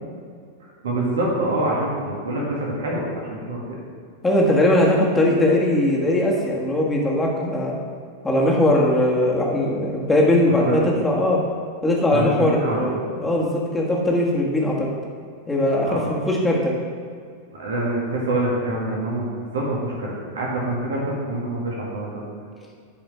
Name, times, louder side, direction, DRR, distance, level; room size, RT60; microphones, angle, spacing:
voice 1, 0.8-3.6 10.6-10.9 12.1-13.0 15.8-16.0 17.5-22.2, right 1 dB, 65° right, -4 dB, 1.8 m, -26 dB
voice 2, 4.2-7.7 8.2-11.4 11.8-14.9 15.5-16.7, left 1 dB, 10° left, -3 dB, 1.6 m, -20 dB
12.0 x 5.0 x 3.4 m, 2.2 s
figure-of-eight pair, 90°, 0 cm